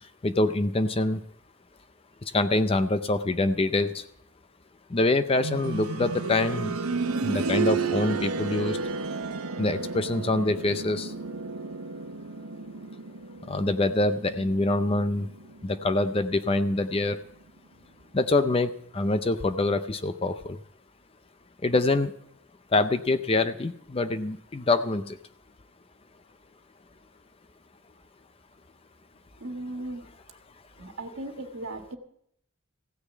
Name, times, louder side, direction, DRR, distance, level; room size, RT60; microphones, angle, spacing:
voice 1, 0.2-1.2 2.3-4.0 4.9-6.7 7.2-8.8 9.6-11.1 13.5-15.3 15.6-17.2 18.1-20.6 21.6-22.1 22.7-25.2, left 2 dB, 25° left, 11 dB, 0.5 m, -25 dB
sound 1, 5.4-16.2 16.5-16.6 17.5-17.6, right 4 dB, 85° right, 0.9 m, -32 dB
voice 2, 29.4-30.0 30.8-32.0, right 1 dB, 65° right, 5 dB, 1.6 m, -37 dB
15.5 x 6.6 x 8.4 m, 0.69 s
head